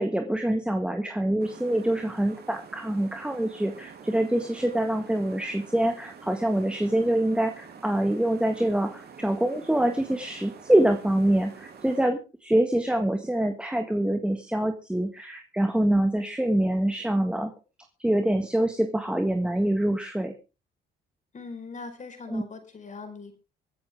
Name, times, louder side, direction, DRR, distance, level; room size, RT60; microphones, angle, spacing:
voice 1, 0.0-17.5 18.0-20.3 22.3-22.4, right 1 dB, 5° right, 5 dB, 1.8 m, -25 dB
sound 1, 1.4-12.1, right 6 dB, 55° right, 3.3 m, -47 dB
voice 2, 21.3-23.4, left 4 dB, 40° left, 7 dB, 4.5 m, -41 dB
25.0 x 8.8 x 3.6 m, 0.31 s
cardioid pair, 90°, 20 cm